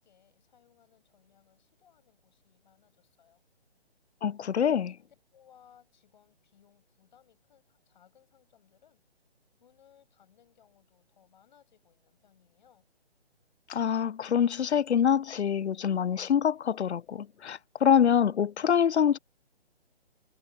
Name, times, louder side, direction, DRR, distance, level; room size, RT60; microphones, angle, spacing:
voice 1, 0.0-3.4 4.4-9.0 9.6-12.9, left 9 dB, 45° left, 6.3 m, -63 dB
voice 2, 4.2-4.9 13.7-19.2, left 8 dB, 80° left, 0.5 m, -25 dB
figure-of-eight pair, 145°, 33 cm